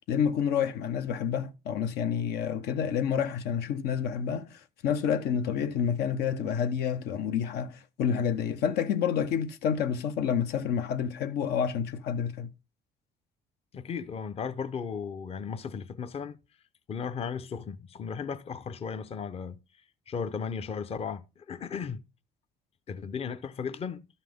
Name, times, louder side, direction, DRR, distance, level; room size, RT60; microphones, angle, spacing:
voice 1, 0.1-12.5, left 7 dB, 80° left, 0.8 m, -29 dB
voice 2, 13.7-16.4 16.9-19.6 20.1-22.0 22.9-24.1, left 6 dB, 35° left, 0.6 m, -35 dB
12.0 x 5.8 x 3.5 m
cardioid pair, 110°, 17 cm